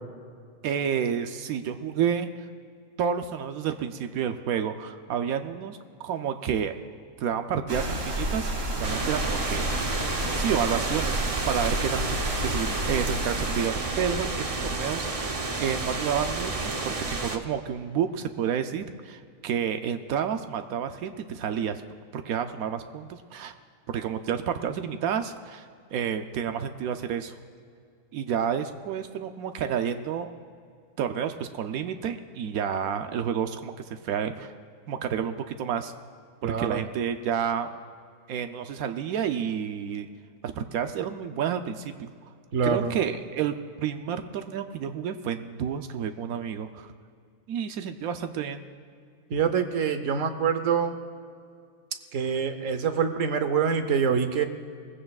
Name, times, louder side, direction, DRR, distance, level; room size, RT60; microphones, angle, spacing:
voice 1, 0.6-2.5 3.0-6.7 7.2-9.6 10.3-11.2 11.5-21.8 22.1-23.5 23.9-27.3 28.1-30.4 31.0-34.5 34.9-35.9 36.4-37.8 38.3-40.1 40.5-42.1 42.6-46.9 47.5-48.6, right 8 dB, 85° right, 7 dB, 1.1 m, -30 dB
sound 1, 7.7-13.7, right 1 dB, 45° right, 1.9 m, -31 dB
sound 2, 8.8-17.4, right 3 dB, 30° right, 0.7 m, -30 dB
voice 2, 36.4-36.8 42.5-43.0 49.3-50.9 52.1-54.5, right 6 dB, 65° right, 9 dB, 1.2 m, -25 dB
20.5 x 15.0 x 2.4 m, 2.3 s
omnidirectional pair, 1.5 m